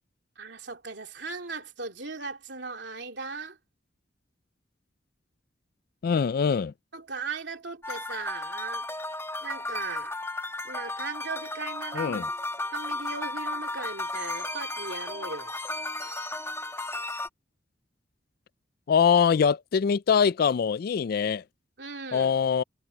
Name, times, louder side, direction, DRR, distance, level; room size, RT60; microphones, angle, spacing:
voice 1, 0.3-3.6 6.9-8.9 9.4-10.2 10.6-12.2 12.7-15.5 21.8-22.3, right 4 dB, 70° right, 3.3 m, -37 dB
voice 2, 6.0-6.7 12.0-12.2 18.9-21.4 22.1-22.6, left 6 dB, 55° left, 0.3 m, -23 dB
sound 1, 7.8-17.3, left 2 dB, 15° left, 1.7 m, -34 dB
head